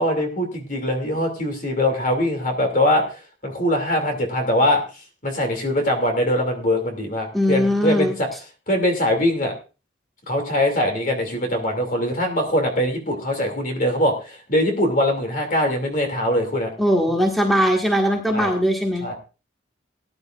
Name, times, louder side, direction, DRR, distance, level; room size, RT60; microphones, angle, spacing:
voice 1, 0.0-4.8 5.2-8.3 8.7-9.5 10.3-16.7 18.3-18.5 19.0-19.1, left 1 dB, 45° left, 4 dB, 2.6 m, -22 dB
voice 2, 7.3-8.2 16.8-19.1, equal, ahead, 1 dB, 1.7 m, -20 dB
19.0 x 11.0 x 2.5 m, 0.32 s
head